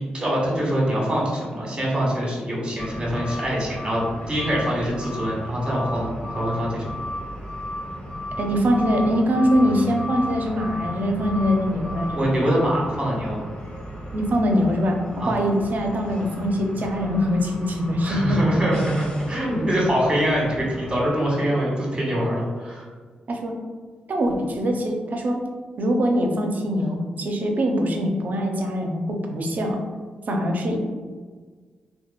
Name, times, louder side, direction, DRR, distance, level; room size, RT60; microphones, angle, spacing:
voice 1, 0.0-7.0 12.0-13.4 15.2-15.4 18.0-22.8, equal, 25° right, -5 dB, 1.2 m, -24 dB
sound 1, 2.8-21.1, left 1 dB, 35° left, 1.3 m, -35 dB
voice 2, 8.4-12.2 14.1-18.4 23.3-23.6 24.1-25.4 25.8-29.8 30.3-30.8, equal, 55° right, 2 dB, 0.5 m, -23 dB
2.8 x 2.3 x 2.3 m, 1.5 s
supercardioid pair, 50°, 3 cm